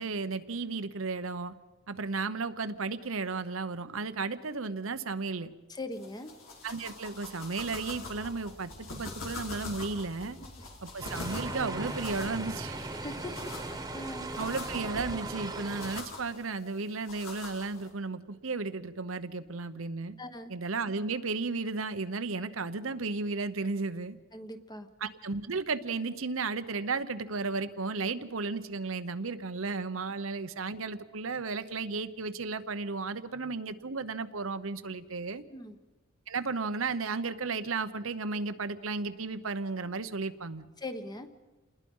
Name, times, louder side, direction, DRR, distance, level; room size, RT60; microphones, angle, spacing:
voice 1, 0.0-1.5 1.9-5.5 6.6-10.4 10.8-12.9 14.4-20.2 20.5-24.2 25.0-35.4 36.3-40.7, right 4 dB, 80° right, 11 dB, 0.9 m, -34 dB
voice 2, 5.7-6.3 10.6-10.7 13.0-13.6 13.9-14.3 20.2-20.5 24.3-24.9 35.5-35.8 40.8-41.3, left 1 dB, 20° left, 8 dB, 1.2 m, -40 dB
sound 1, 5.9-17.9, left 3 dB, 80° left, 4.4 m, -45 dB
sound 2, 11.0-16.0, right 2 dB, 15° right, 1.4 m, -38 dB
28.0 x 20.5 x 5.5 m, 1.2 s
head